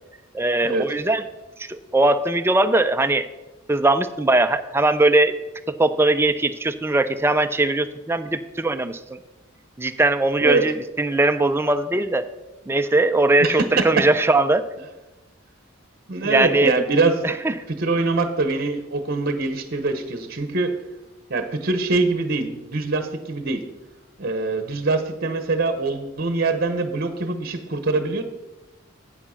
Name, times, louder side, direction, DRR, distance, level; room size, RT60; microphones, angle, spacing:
voice 1, 0.3-1.2 1.6-3.3 3.7-5.3 5.7-9.0 9.8-12.2 12.7-14.6 16.2-16.7 17.2-17.5, right 2 dB, 10° right, 9 dB, 0.4 m, -20 dB
voice 2, 13.4-14.0 16.1-17.2 17.7-20.7 21.3-23.6 24.2-28.2, right 3 dB, 50° right, 9 dB, 0.9 m, -23 dB
8.7 x 7.3 x 5.7 m, 1.0 s
head